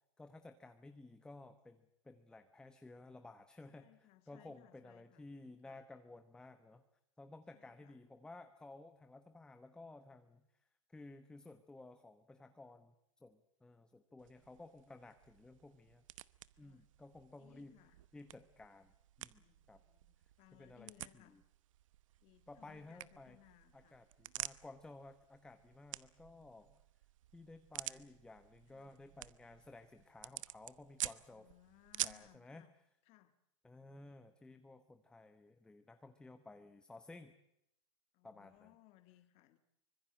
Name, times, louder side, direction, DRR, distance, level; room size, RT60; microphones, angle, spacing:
voice 1, 0.2-6.8 7.2-10.5 10.9-16.1 16.6-17.7 18.1-19.8 20.5-21.4 22.5-23.4 23.7-26.8 27.3-31.5 32.0-32.7 33.6-37.3 38.2-38.7, left 2 dB, 5° left, 9 dB, 1.0 m, -56 dB
voice 2, 3.7-5.8 7.5-8.0 16.5-16.9 17.4-18.0 19.4-21.4 22.2-24.0 28.7-29.0 31.3-32.7 33.0-33.4 38.1-39.6, left 16 dB, 40° left, 10 dB, 1.8 m, -65 dB
sound 1, 14.2-32.4, right 13 dB, 80° right, 1.0 m, -49 dB
25.0 x 21.5 x 7.5 m, 0.79 s
supercardioid pair, 150°, 17 cm